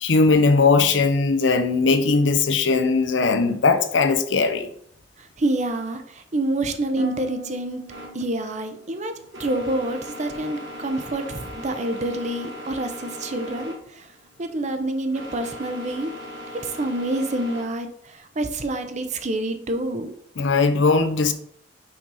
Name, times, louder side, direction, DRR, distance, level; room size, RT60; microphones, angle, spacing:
voice 1, 0.0-4.7 20.4-21.3, left 4 dB, 80° left, 0.7 m, -19 dB
voice 2, 5.4-7.8 8.1-9.1 9.4-14.1 14.4-16.1 16.5-20.1, right 2 dB, 40° right, 0.7 m, -27 dB
Harp, 7.0-11.1 11.4-11.9 12.4-12.7, equal, 60° right, 2.2 m, -44 dB
sound 1, 7.9-17.6, left 1 dB, 80° right, 1.7 m, -39 dB
5.8 x 4.0 x 4.8 m
head